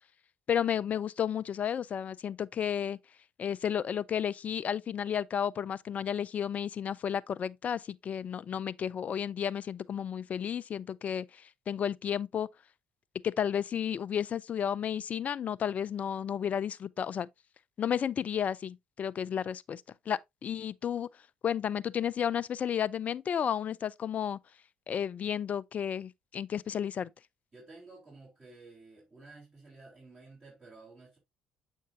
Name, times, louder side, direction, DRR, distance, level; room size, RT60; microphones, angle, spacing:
voice 1, 0.5-3.0 3.4-12.5 13.2-17.3 17.8-21.1 21.4-24.4 24.9-27.1, left 8 dB, 40° left, 0.4 m, -32 dB
voice 2, 27.5-31.2, right 3 dB, 30° right, 3.7 m, -53 dB
7.4 x 5.5 x 2.6 m
hypercardioid pair, 55°, 4 cm